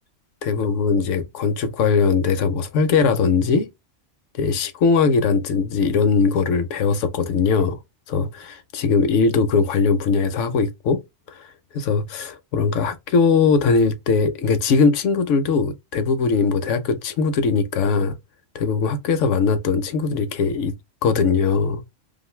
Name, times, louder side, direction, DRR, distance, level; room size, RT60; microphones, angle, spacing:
voice 1, 0.4-3.7 4.4-7.8 8.1-11.0 11.4-11.5 11.7-18.1 18.5-20.7 21.0-21.8, left 5 dB, 75° left, 0.9 m, -20 dB
2.5 x 2.5 x 3.0 m
omnidirectional pair, 1.3 m